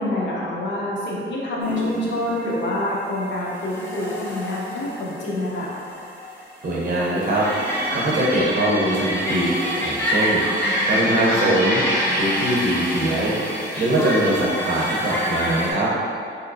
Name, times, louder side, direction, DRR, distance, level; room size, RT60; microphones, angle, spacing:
voice 1, 0.0-5.8, left 1 dB, 60° left, -5 dB, 0.7 m, -26 dB
sound 1, 1.6-15.7, equal, 10° left, 0.4 m, -27 dB
voice 2, 6.6-7.5 7.9-9.5 9.8-10.4 10.9-11.8 12.1-13.3 13.8-15.9, right 1 dB, 40° right, -6 dB, 0.7 m, -22 dB
3.5 x 2.8 x 2.5 m, 2.4 s
wide cardioid pair, 175°, 21 cm